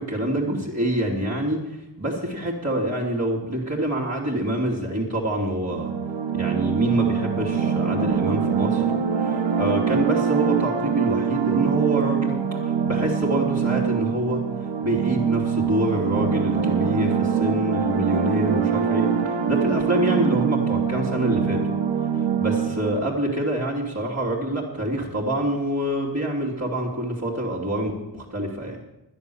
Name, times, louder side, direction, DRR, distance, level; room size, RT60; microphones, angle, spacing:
voice 1, 0.0-1.7 2.0-5.9 6.3-8.9 9.2-14.4 14.8-21.7 22.2-28.8, right 1 dB, 35° right, -4 dB, 2.8 m, -26 dB
sound 1, 5.7-23.0, right 7 dB, 85° right, 1.2 m, -24 dB
11.0 x 10.0 x 7.0 m, 0.93 s
cardioid pair, 50°, 44 cm